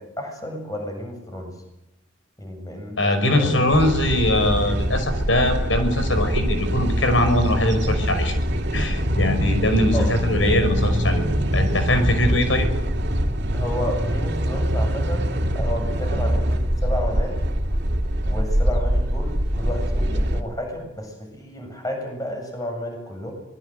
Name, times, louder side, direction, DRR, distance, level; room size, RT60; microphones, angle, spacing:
voice 1, 0.0-1.5 2.4-3.1 3.4-3.5 9.9-10.1 13.5-17.4 18.3-23.3, equal, 20° left, 4 dB, 7.3 m, -32 dB
voice 2, 3.0-8.4 8.7-11.2 11.5-12.7, left 1 dB, 85° left, 8 dB, 5.7 m, -21 dB
sound 1, 3.7-20.4, equal, 60° right, 3.0 m, -23 dB
25.5 x 20.5 x 7.9 m, 0.87 s
head